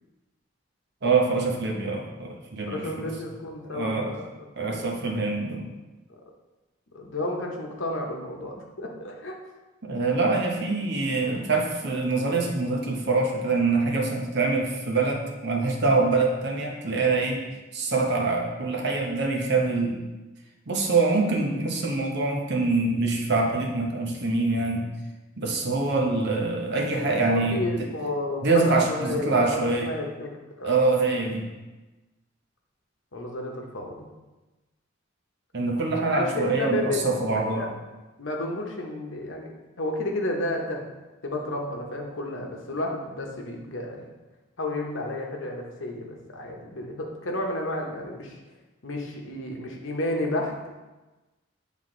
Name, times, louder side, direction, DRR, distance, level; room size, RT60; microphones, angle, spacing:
voice 1, 1.0-3.1 3.7-4.2 4.6-5.7 9.8-17.4 17.7-20.0 20.7-24.9 25.4-27.9 28.4-29.9 30.6-31.5 35.5-37.7, right 3 dB, 55° right, 1 dB, 1.0 m, -25 dB
voice 2, 2.7-4.9 6.9-9.4 27.3-30.3 30.6-30.8 33.1-34.1 35.9-37.7 38.2-40.8 41.2-44.1 44.6-48.3 48.8-50.7, left 1 dB, 65° left, 1 dB, 1.0 m, -31 dB
8.0 x 3.6 x 3.8 m, 1.1 s
head